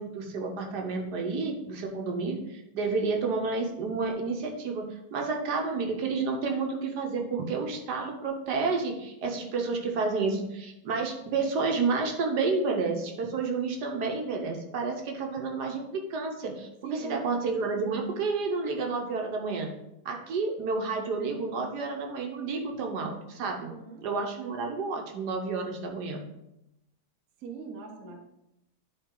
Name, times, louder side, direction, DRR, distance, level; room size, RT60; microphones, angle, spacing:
voice 1, 0.0-4.8 5.1-19.7 20.0-23.7 24.0-26.2, right 4 dB, 70° right, 2 dB, 1.5 m, -30 dB
voice 2, 16.8-17.4 23.6-24.0 27.4-28.2, right 5 dB, 55° right, 3 dB, 1.1 m, -41 dB
10.0 x 3.8 x 3.7 m, 0.87 s
omnidirectional pair, 1.8 m